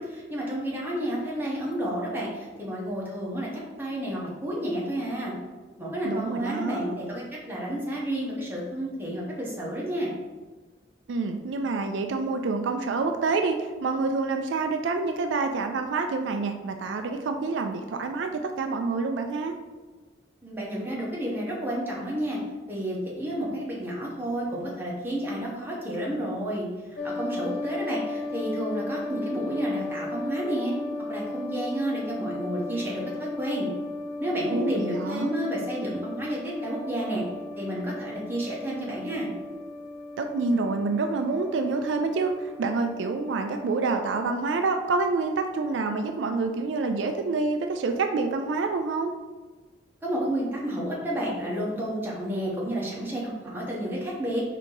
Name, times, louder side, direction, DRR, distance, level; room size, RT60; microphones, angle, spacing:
voice 1, 0.0-5.3 5.8-10.1 20.4-22.4 22.7-26.6 27.0-30.7 31.1-33.7 34.2-37.2 37.6-39.3 50.0-54.4, right 1 dB, 10° right, -5 dB, 1.0 m, -31 dB
voice 2, 6.0-6.9 11.1-19.6 34.5-35.3 40.2-49.1, right 3 dB, 75° right, 5 dB, 0.4 m, -27 dB
sound 1, 27.0-44.2, left 2 dB, 60° left, 0.5 m, -36 dB
4.6 x 2.8 x 3.8 m, 1.3 s
head